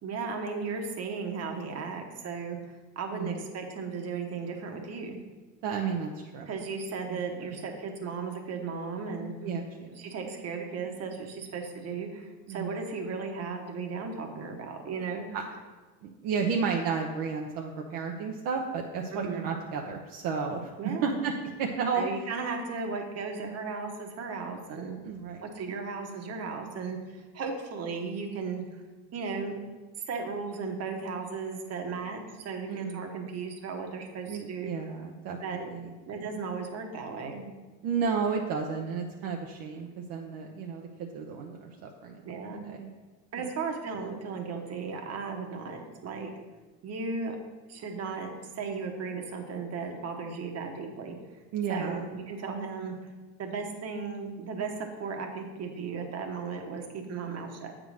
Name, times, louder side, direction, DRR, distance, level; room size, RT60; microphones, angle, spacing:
voice 1, 0.0-2.6 2.9-5.2 6.5-9.3 10.0-15.2 19.1-19.4 20.8-21.1 21.9-25.0 25.4-28.8 29.1-29.6 30.1-34.7 35.4-35.7 36.1-37.5 42.2-42.6 43.3-46.3 46.8-47.4 47.7-51.2 51.7-53.0 53.4-57.7, right 4 dB, 40° right, 3 dB, 1.2 m, -35 dB
voice 2, 3.1-3.4 5.6-6.5 7.0-7.6 9.4-9.9 12.5-12.8 15.3-15.4 16.0-20.7 21.0-21.3 21.6-22.0 25.0-25.4 32.7-33.1 34.3-35.9 37.8-42.9 43.4-43.5 51.5-52.1, right 5 dB, 60° right, 1 dB, 0.9 m, -32 dB
7.8 x 3.8 x 6.3 m, 1.3 s
cardioid pair, 125°, 38 cm